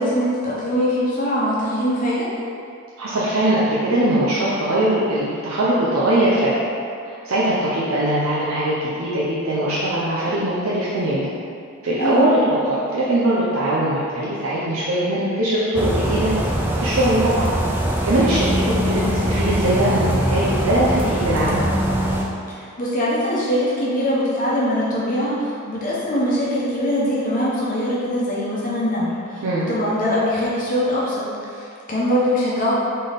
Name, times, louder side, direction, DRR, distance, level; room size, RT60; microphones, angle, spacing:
voice 1, 0.0-2.3 12.0-12.3 22.5-32.7, equal, 40° left, -7 dB, 0.9 m, -22 dB
voice 2, 3.0-6.5 7.2-11.3 11.8-12.4 12.7-16.3 16.8-17.5 18.0-21.6 29.4-29.7, right 1 dB, 85° right, -8 dB, 0.7 m, -21 dB
sound 1, 15.7-22.2, equal, 10° right, 0.3 m, -22 dB
4.0 x 3.8 x 3.5 m, 2.5 s
head